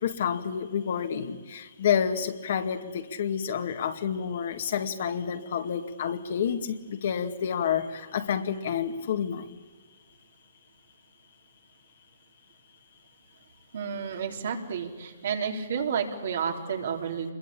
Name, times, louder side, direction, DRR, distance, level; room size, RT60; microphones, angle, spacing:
voice 1, 0.0-9.4, left 8 dB, 60° left, 6 dB, 2.1 m, -29 dB
voice 2, 13.7-17.3, right 6 dB, 65° right, 2 dB, 3.9 m, -31 dB
25.5 x 22.0 x 8.7 m, 1.3 s
hypercardioid pair, 150°, 0 cm